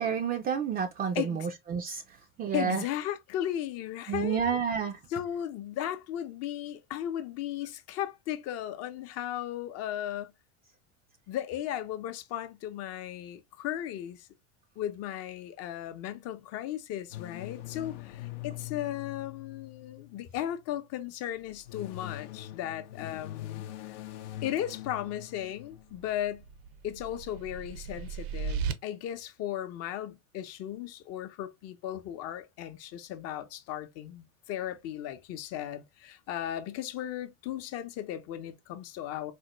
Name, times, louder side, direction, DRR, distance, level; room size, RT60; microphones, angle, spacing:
voice 1, 0.0-2.0 2.4-2.8 4.1-5.0, right 7 dB, 30° right, 0.4 m, -30 dB
voice 2, 1.1-1.5 2.5-4.4 5.1-10.3 11.3-14.3 14.8-23.9 24.4-26.4 26.8-39.3, left 11 dB, 45° left, 0.7 m, -36 dB
sound 1, 17.1-20.5 21.4-26.2, left 15 dB, 85° left, 0.6 m, -43 dB
sound 2, 25.9-28.7, right 6 dB, 65° right, 0.7 m, -36 dB
4.3 x 2.1 x 2.9 m
supercardioid pair, 110°, 33 cm